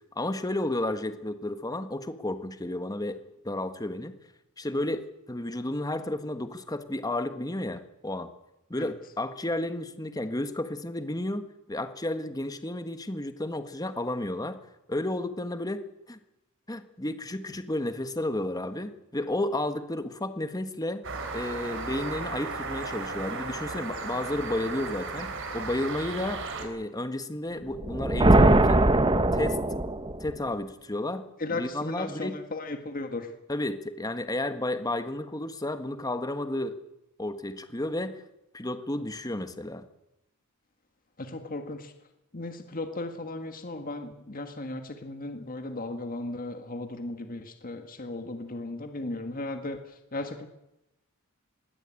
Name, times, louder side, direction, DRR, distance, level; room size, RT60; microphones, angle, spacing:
voice 1, 0.1-4.1 4.6-8.3 8.7-14.6 14.9-15.8 16.1-16.2 16.7-21.0 21.3-28.8 29.3-29.6 30.2-31.2 31.5-32.4 33.5-36.8 37.2-38.2 38.5-39.8, left 1 dB, 15° left, 10 dB, 1.5 m, -32 dB
sound 1, 21.0-26.7, right 4 dB, 60° right, 3.8 m, -35 dB
sound 2, 27.7-30.4, right 2 dB, 25° right, 1.3 m, -21 dB
voice 2, 31.4-33.3 41.2-41.9 42.3-50.5, left 2 dB, 40° left, 7 dB, 1.8 m, -36 dB
21.5 x 17.0 x 8.9 m, 0.89 s
head